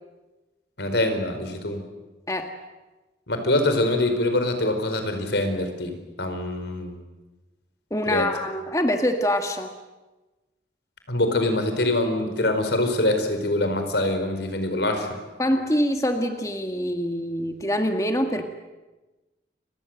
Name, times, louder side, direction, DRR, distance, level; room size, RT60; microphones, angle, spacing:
voice 1, 0.8-1.8 3.3-7.0 8.1-8.3 11.1-15.1, left 1 dB, 85° left, 7 dB, 4.8 m, -24 dB
voice 2, 7.9-9.7 15.4-18.5, equal, 20° left, 5 dB, 1.7 m, -25 dB
29.5 x 24.0 x 7.9 m, 1.1 s
head